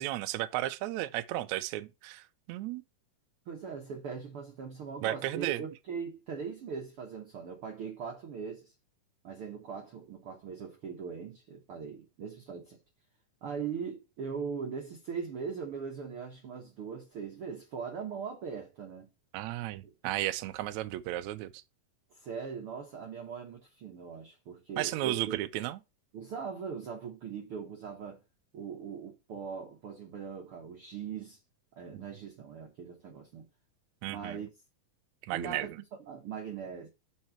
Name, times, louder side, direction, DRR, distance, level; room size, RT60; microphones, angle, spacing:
voice 1, 0.0-2.8 5.0-5.6 19.3-21.6 24.8-25.8 31.9-32.1 34.0-34.4 35.2-35.8, right 15 dB, 80° right, 1.7 m, -34 dB
voice 2, 3.5-8.7 9.2-12.8 13.4-19.1 22.1-25.4 26.1-28.2 28.5-31.4 31.7-33.5 34.1-34.5 35.3-35.7 36.1-36.9, right 6 dB, 60° right, 1.5 m, -40 dB
6.6 x 4.3 x 5.8 m
omnidirectional pair, 4.0 m